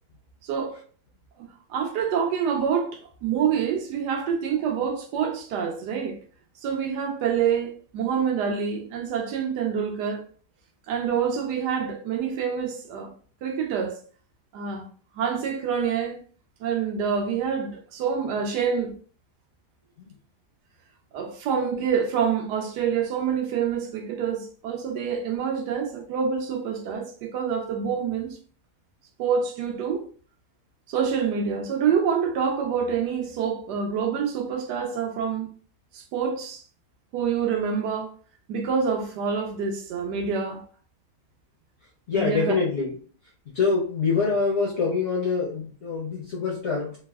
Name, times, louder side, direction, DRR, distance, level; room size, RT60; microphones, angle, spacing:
voice 1, 0.4-0.8 1.4-6.2 6.6-10.2 10.9-13.1 13.4-14.0 14.5-14.9 15.1-16.2 16.6-18.9 21.1-28.4 29.2-30.0 30.9-35.5 35.9-36.6 37.1-38.1 38.5-40.6 42.1-42.5, right 7 dB, 80° right, 1.2 m, -27 dB
voice 2, 42.1-43.0 43.5-47.0, left 4 dB, 60° left, 0.7 m, -25 dB
3.3 x 2.1 x 2.2 m
omnidirectional pair, 1.8 m